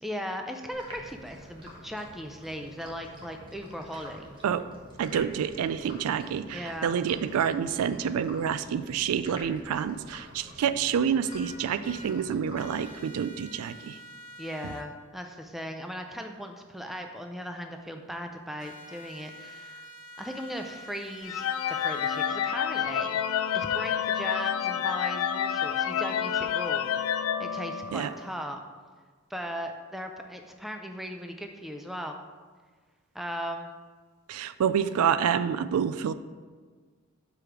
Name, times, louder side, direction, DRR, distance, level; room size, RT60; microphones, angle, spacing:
voice 1, 0.0-4.3 6.5-6.9 14.4-19.9 20.2-23.2 23.5-28.6 29.3-32.2 33.1-33.7, equal, ahead, 4 dB, 0.4 m, -38 dB
sound 1, 0.7-13.4, equal, 20° right, 1.1 m, -48 dB
voice 2, 5.0-14.0 14.6-14.7 27.9-28.1 34.3-36.1, right 8 dB, 90° right, 13 dB, 0.3 m, -28 dB
sound 2, 11.3-12.1 12.6-14.8 18.6-22.3, left 1 dB, 30° left, 0.9 m, -46 dB
sound 3, 21.2-28.2, left 8 dB, 70° left, 0.3 m, -29 dB
5.0 x 4.8 x 5.9 m, 1.5 s
head